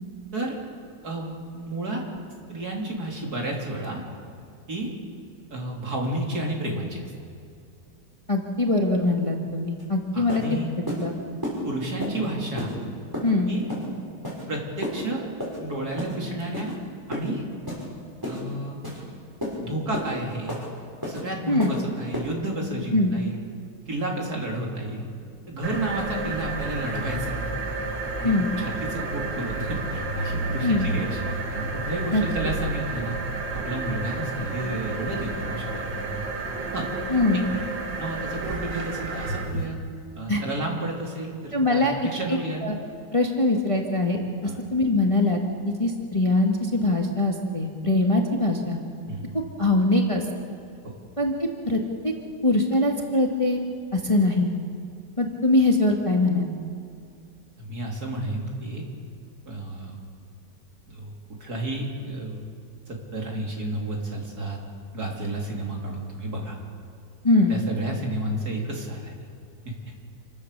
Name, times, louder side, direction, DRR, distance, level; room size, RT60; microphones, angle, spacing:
voice 1, 1.0-2.0 2.5-4.0 4.7-4.9 5.5-7.0 10.1-10.7 11.6-12.7 13.5-13.7 14.5-15.3 15.6-16.7 17.1-17.4 18.2-18.8 19.6-20.6 21.1-23.4 23.9-25.1 25.5-27.4 28.2-33.2 33.5-36.2 36.7-36.9 37.5-37.6 38.0-39.8 40.2-42.6 44.4-44.6 49.1-49.4 50.8-50.9 57.6-58.8 59.5-60.0 60.9-61.1 61.4-62.4 62.9-64.6 64.9-66.6 67.5-69.1 69.7-69.8, right 1 dB, 55° right, -1 dB, 3.7 m, -31 dB
voice 2, 8.3-10.4 11.0-11.1 13.2-13.5 21.5-21.7 22.9-23.1 28.2-28.5 30.6-30.9 32.1-32.2 37.1-37.4 40.3-40.4 41.5-41.9 42.3-42.7 43.1-45.4 45.6-48.8 49.3-50.2 51.2-51.3 51.7-52.1 52.4-53.6 53.9-54.5 55.2-56.5 67.2-67.5, left 2 dB, 20° left, 1 dB, 1.7 m, -22 dB
sound 1, 9.8-9.9 10.3-10.4 10.9-11.0 11.4-11.6 12.0-12.1 12.6-12.7 13.1-13.3 13.7-13.8 14.2-14.4 14.8-15.0 15.4-15.6 16.0-16.1 16.5-16.7 17.1-17.3 17.7-17.8 18.2-18.4 18.8-19.0 19.4-19.5 19.9-20.1 20.5-20.6 21.0-21.2 21.6-21.8 22.1-22.3, left 1 dB, 10° right, 5.9 m, -31 dB
sound 2, 25.6-39.7, right 3 dB, 85° right, 2.6 m, -31 dB
27.5 x 16.0 x 6.8 m, 2.4 s
omnidirectional pair, 1.9 m